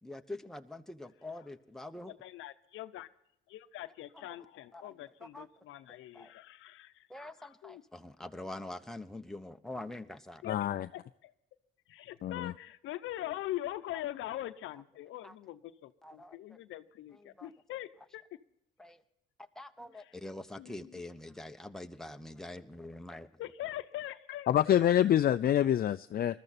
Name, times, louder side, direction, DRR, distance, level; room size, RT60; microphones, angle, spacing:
voice 1, 0.0-2.1 4.1-4.4 4.7-5.5 5.9-6.3 7.1-10.4 15.2-15.3 16.0-16.6 17.2-17.5 18.8-19.0 19.4-23.3, left 1 dB, ahead, 6 dB, 1.0 m, -45 dB
voice 2, 2.1-3.1 3.5-7.1 7.4-7.8 10.4-11.3 11.9-18.2 20.6-21.0 23.4-24.7, left 14 dB, 85° left, 12 dB, 0.8 m, -42 dB
voice 3, 10.4-10.9 12.2-12.5 24.5-26.4, left 11 dB, 50° left, 11 dB, 0.4 m, -26 dB
21.0 x 13.5 x 4.2 m, 0.76 s
cardioid pair, 90°, 20 cm